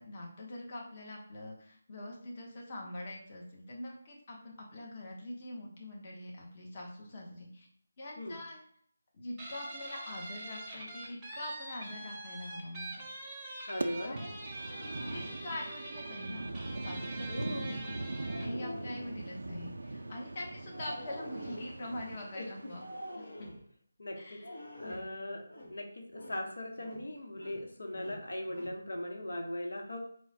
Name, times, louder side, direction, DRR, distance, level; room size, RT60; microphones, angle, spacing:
voice 1, 0.0-7.7 8.0-8.6 9.1-13.1 14.0-14.8 15.1-16.5 16.8-18.1 18.4-22.9 23.2-23.5 24.2-24.5 24.8-25.0, left 1 dB, 30° left, -2 dB, 0.7 m, -44 dB
Guitar, 9.4-18.6, right 2 dB, 10° right, 0.7 m, -44 dB
voice 2, 13.7-14.1 17.3-17.7 22.3-22.7 24.0-24.4 24.8-25.4 25.7-30.0, left 1 dB, 80° left, 2 dB, 0.8 m, -39 dB
sound 1, 13.8-23.2, right 2 dB, 80° right, 0.4 m, -41 dB
sound 2, 14.4-15.4 17.9-19.2 20.7-21.8 22.7-23.7 24.4-25.2 25.5-25.8 26.1-26.5 26.8-27.6 27.9-28.8, left 1 dB, 60° left, 1.1 m, -46 dB
4.5 x 2.0 x 4.0 m, 0.63 s
figure-of-eight pair, 170°, 0 cm